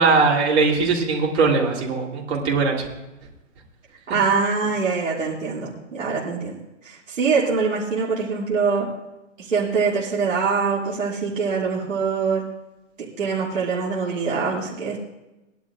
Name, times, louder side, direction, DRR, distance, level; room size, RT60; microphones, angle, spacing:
voice 1, 0.0-2.9, right 4 dB, 55° right, -2 dB, 3.3 m, -20 dB
voice 2, 4.1-6.5 6.8-8.9 9.4-12.4 13.2-15.0, right 5 dB, 75° right, -5 dB, 2.5 m, -23 dB
19.5 x 11.0 x 2.5 m, 1.0 s
hypercardioid pair, 135°, 39 cm